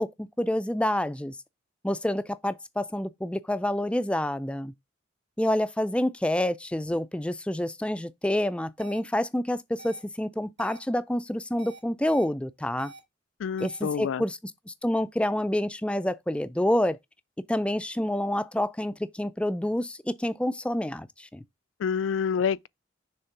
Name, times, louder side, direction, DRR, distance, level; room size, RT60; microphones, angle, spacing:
voice 1, 0.0-1.4 1.8-4.7 5.4-12.9 13.6-14.4 14.7-17.0 17.5-21.4, left 1 dB, 5° left, 0.3 m, -28 dB
sound 1, 8.8-9.0 9.8-10.0 10.6-10.8 11.6-12.2 12.8-13.0 13.6-13.8, right 2 dB, 60° right, 2.4 m, -46 dB
voice 2, 13.4-14.2 21.8-22.7, left 7 dB, 85° left, 0.3 m, -27 dB
6.5 x 3.4 x 5.8 m
head